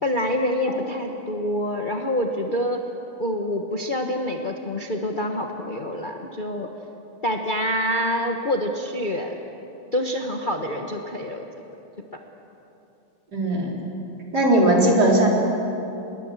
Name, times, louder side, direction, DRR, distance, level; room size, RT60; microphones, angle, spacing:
voice 1, 0.0-2.8 3.2-6.7 7.2-9.3 9.9-11.4, left 1 dB, 30° left, 2 dB, 1.2 m, -26 dB
voice 2, 13.3-13.7 14.3-15.3, right 1 dB, 50° right, -2 dB, 4.7 m, -18 dB
27.0 x 21.0 x 7.4 m, 2.9 s
omnidirectional pair, 2.3 m